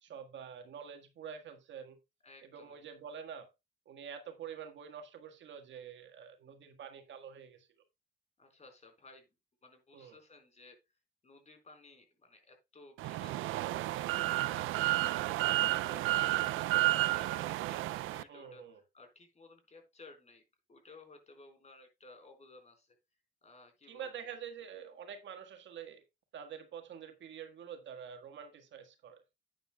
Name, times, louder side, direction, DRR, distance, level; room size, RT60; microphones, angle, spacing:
voice 1, 0.0-2.0 2.5-3.5 3.8-7.7 9.9-10.2 18.3-18.8 23.9-26.0 26.3-29.2, right 7 dB, 70° right, 1.6 m, -47 dB
voice 2, 2.2-2.8 8.4-9.3 9.6-14.1 14.5-20.4 20.7-23.0 23.4-24.1, left 3 dB, 35° left, 4.6 m, -57 dB
sound 1, 13.0-18.2, right 16 dB, 85° right, 0.4 m, -31 dB
10.5 x 9.4 x 2.3 m
cardioid pair, 90°, 20 cm